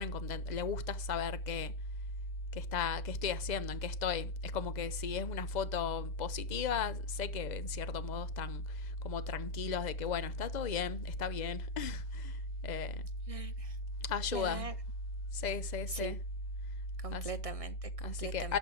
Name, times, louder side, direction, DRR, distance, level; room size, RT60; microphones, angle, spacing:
voice 1, 0.0-1.7 2.5-8.6 9.0-12.3 12.6-13.0 14.0-14.7 15.3-16.2 17.1-17.4 18.0-18.6, left 4 dB, 50° left, 0.7 m, -35 dB
voice 2, 13.3-13.8 14.3-14.7 15.9-16.1 17.0-18.6, right 5 dB, 50° right, 0.4 m, -42 dB
11.0 x 5.5 x 4.5 m
omnidirectional pair, 1.1 m